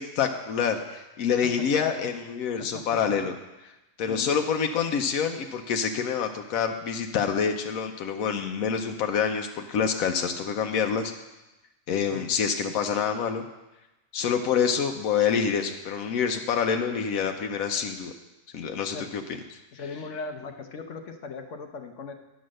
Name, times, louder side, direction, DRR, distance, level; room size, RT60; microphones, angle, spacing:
voice 1, 0.0-3.3 4.0-11.1 11.9-13.4 14.1-18.1 18.5-19.2 19.5-19.6, left 7 dB, 80° left, 5 dB, 1.1 m, -27 dB
voice 2, 1.6-2.1 2.7-3.3 4.1-4.4 12.1-12.3 18.9-19.1 19.7-22.1, left 4 dB, 60° left, 5 dB, 1.2 m, -38 dB
10.0 x 6.3 x 6.3 m, 1.0 s
omnidirectional pair, 1.5 m